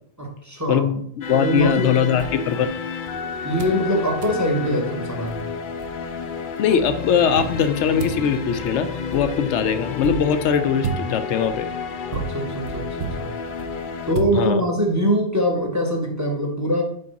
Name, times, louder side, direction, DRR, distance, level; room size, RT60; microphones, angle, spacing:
voice 1, 0.2-0.9 1.3-2.0 3.4-5.5 12.1-13.3 14.1-16.8, equal, 15° right, 1 dB, 0.8 m, -23 dB
voice 2, 0.7-2.7 6.6-11.7 14.3-14.6, left 7 dB, 85° left, 10 dB, 0.9 m, -21 dB
sound 1, 1.2-14.2, left 6 dB, 55° left, 0.6 m, -31 dB
sound 2, 1.6-3.1 3.6-3.9 4.2-4.5 5.0-5.1 5.3-6.4 7.4-14.9, right 5 dB, 55° right, 0.8 m, -34 dB
5.3 x 4.8 x 4.0 m, 0.65 s
omnidirectional pair, 1.2 m